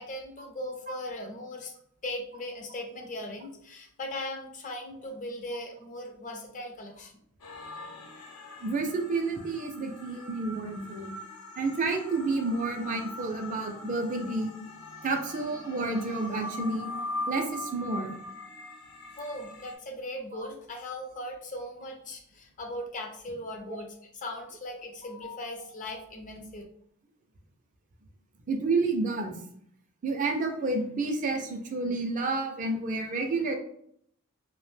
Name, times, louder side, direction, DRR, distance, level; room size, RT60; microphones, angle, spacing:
voice 1, 0.0-1.7 2.0-7.1 19.2-23.9 24.2-26.6, left 1 dB, 35° left, 3 dB, 0.5 m, -38 dB
sound 1, 7.4-19.7, left 2 dB, 90° left, 0.7 m, -41 dB
voice 2, 8.6-11.1 11.6-14.6 15.0-16.9 17.3-18.2 23.7-23.8 28.5-29.3 30.0-33.5, right 3 dB, 35° right, 3 dB, 0.4 m, -30 dB
2.7 x 2.1 x 3.2 m, 0.68 s
head